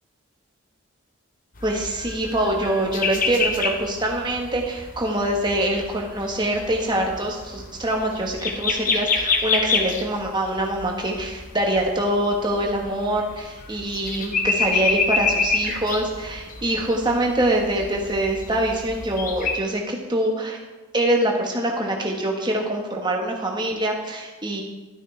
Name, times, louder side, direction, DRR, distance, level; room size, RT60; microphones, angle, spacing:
sound 1, 1.6-19.6, left 4 dB, 40° left, 0.9 m, -28 dB
voice 1, 1.6-20.6 20.9-24.6, right 1 dB, 20° right, 1 dB, 1.2 m, -24 dB
12.0 x 9.2 x 3.3 m, 1.3 s
head